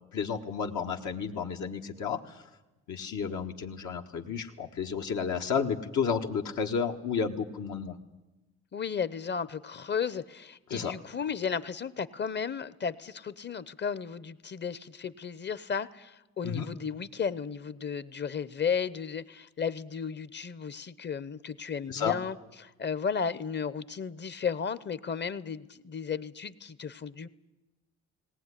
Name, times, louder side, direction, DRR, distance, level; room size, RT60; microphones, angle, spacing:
voice 1, 0.0-2.2 2.9-8.0 10.7-10.9 16.4-16.7 21.9-22.2, left 6 dB, 75° left, 2 dB, 1.6 m, -31 dB
voice 2, 8.7-27.3, left 6 dB, 35° left, 17 dB, 0.9 m, -34 dB
18.5 x 18.5 x 9.9 m, 1.0 s
cardioid pair, 90°, 30 cm